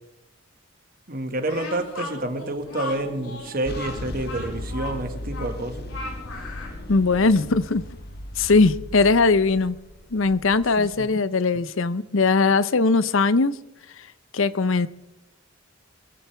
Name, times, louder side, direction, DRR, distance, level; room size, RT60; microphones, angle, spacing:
voice 1, 1.1-5.9 10.8-11.1, right 1 dB, 40° right, 1.8 m, -29 dB
Speech, 1.4-6.8, left 2 dB, 85° left, 5.9 m, -37 dB
sound 1, 2.6-7.7, left 1 dB, 30° left, 5.8 m, -47 dB
sound 2, 3.6-11.0, left 1 dB, 50° left, 1.1 m, -37 dB
voice 2, 6.9-7.8 8.4-9.8 10.1-13.5 14.3-14.9, left 3 dB, 65° left, 0.7 m, -20 dB
25.5 x 15.0 x 3.5 m
head